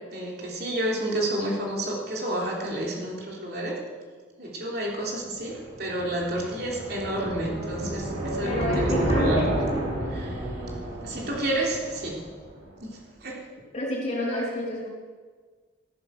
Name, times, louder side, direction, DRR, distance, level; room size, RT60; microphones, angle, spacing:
voice 1, 0.1-3.8 4.4-9.5 10.1-10.4 11.0-12.2 12.8-12.9 13.2-13.4, right 1 dB, 55° right, -2 dB, 3.4 m, -30 dB
sound 1, 5.2-12.6, right 1 dB, 90° right, 5.0 m, -30 dB
voice 2, 8.4-9.5 13.7-14.9, left 1 dB, 35° left, -4 dB, 3.8 m, -29 dB
14.0 x 11.5 x 6.4 m, 1.5 s
head